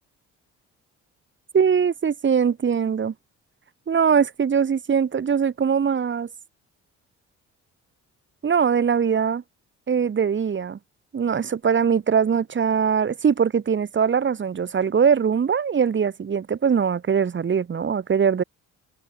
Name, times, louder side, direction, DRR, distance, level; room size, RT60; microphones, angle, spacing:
voice 1, 1.5-3.1 3.9-6.3 8.4-9.4 9.9-10.8 11.1-18.4, right 7 dB, 40° right, 1.6 m, -21 dB
cardioid pair, 90°, 30 cm